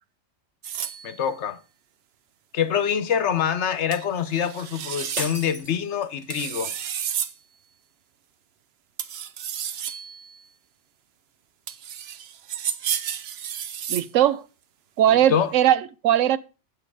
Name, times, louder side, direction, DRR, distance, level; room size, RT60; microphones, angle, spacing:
sound 1, 0.6-1.4 3.9-4.1 4.3-5.3 6.3-7.3 9.0-10.5 11.7-14.1, right 9 dB, 60° right, 0.9 m, -32 dB
voice 1, 1.0-1.6 2.5-6.7 15.1-15.5, left 8 dB, 70° left, 1.1 m, -25 dB
sound 2, 5.2-6.4, right 1 dB, 35° right, 1.8 m, -34 dB
voice 2, 13.9-14.4 15.0-16.4, right 11 dB, 85° right, 1.0 m, -19 dB
8.4 x 7.6 x 4.7 m
omnidirectional pair, 1.3 m